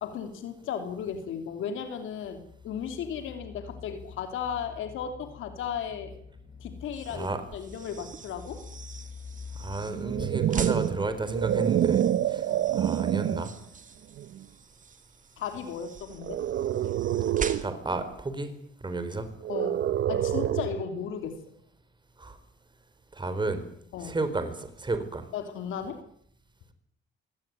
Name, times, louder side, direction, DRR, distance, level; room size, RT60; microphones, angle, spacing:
voice 1, 0.0-6.1 6.6-8.6 12.5-12.7 15.4-16.4 19.5-21.4 23.9-24.2 25.3-26.0, left 7 dB, 85° left, 7 dB, 3.2 m, -35 dB
sound 1, 2.1-11.6, left 5 dB, 35° left, 7.9 m, -47 dB
sound 2, 6.8-18.0, right 5 dB, 40° right, 2.5 m, -42 dB
voice 2, 9.5-12.0 12.3-13.5 17.6-18.5 18.8-19.3 22.2-22.4 23.1-23.6 24.0-25.3, right 2 dB, 25° right, 10 dB, 4.5 m, -32 dB
sound 3, 9.9-13.5 14.2-14.4 16.2-17.7 19.4-20.9, right 11 dB, 65° right, 1.0 m, -27 dB
22.5 x 18.5 x 9.3 m, 0.67 s
cardioid pair, 90°, 20 cm